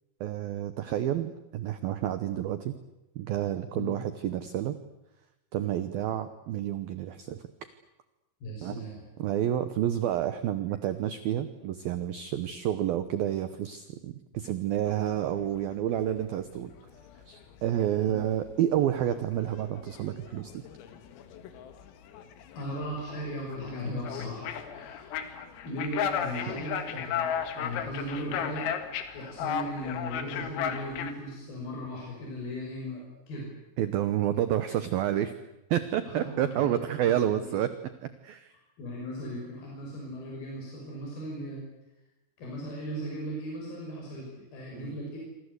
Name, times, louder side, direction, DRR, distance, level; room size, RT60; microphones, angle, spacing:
voice 1, 0.2-2.7 3.2-4.8 5.5-7.4 8.6-8.8 9.2-16.7 17.3-20.6 26.5-26.7 33.8-35.3 35.7-37.7 38.2-38.5 44.7-45.0, right 11 dB, 85° right, 12 dB, 2.1 m, -29 dB
voice 2, 8.4-9.0 18.1-18.2 22.6-25.2 25.6-28.7 29.1-33.5 36.1-36.8 37.0-37.5 38.8-41.7 42.4-45.2, equal, 50° left, -2 dB, 7.5 m, -37 dB
sound 1, 14.8-15.7 15.9-16.5 16.7-31.1, left 8 dB, 85° left, 4.7 m, -35 dB
27.5 x 25.5 x 8.2 m, 0.95 s
omnidirectional pair, 5.9 m